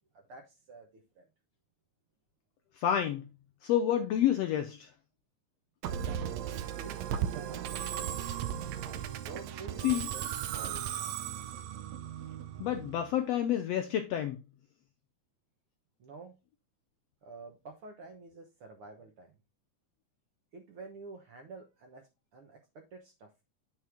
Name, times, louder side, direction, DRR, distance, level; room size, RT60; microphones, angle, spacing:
voice 1, 0.3-1.3 6.2-8.1 9.1-10.8 16.0-16.4 17.2-19.3 20.5-23.3, right 3 dB, 60° right, 1.5 m, -50 dB
voice 2, 2.8-3.3 3.6-4.9 9.8-10.1 12.6-14.4, left 10 dB, 75° left, 1.5 m, -29 dB
Musical instrument, 5.8-13.2, right 9 dB, 80° right, 1.7 m, -36 dB
8.8 x 4.7 x 3.5 m
omnidirectional pair, 3.6 m